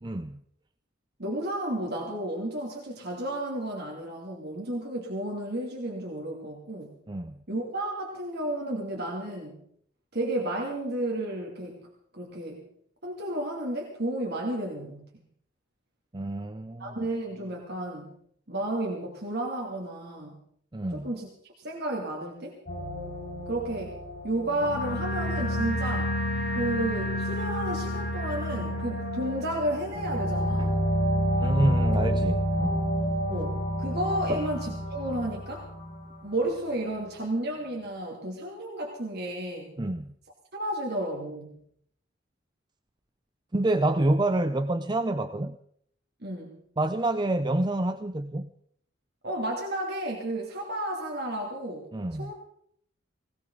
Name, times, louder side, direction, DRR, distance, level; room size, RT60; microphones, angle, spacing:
voice 1, 0.0-0.4 7.1-7.4 16.1-17.0 20.7-21.1 30.6-30.8 31.4-32.9 34.3-34.4 39.8-40.1 43.5-45.6 46.8-48.5 51.9-52.3, right 1 dB, 25° right, 10 dB, 0.6 m, -28 dB
voice 2, 1.2-6.9 7.5-9.6 10.1-11.9 12.1-12.6 13.0-15.1 16.8-18.1 18.5-20.4 20.9-22.6 23.5-26.2 26.5-30.9 33.3-35.7 36.2-39.8 40.5-41.6 46.2-46.6 49.2-51.9 52.2-52.3, right 1 dB, 55° right, 0 dB, 2.8 m, -32 dB
sound 1, 22.7-36.2, equal, 50° left, 4.3 m, -29 dB
19.5 x 19.0 x 4.0 m, 0.67 s
head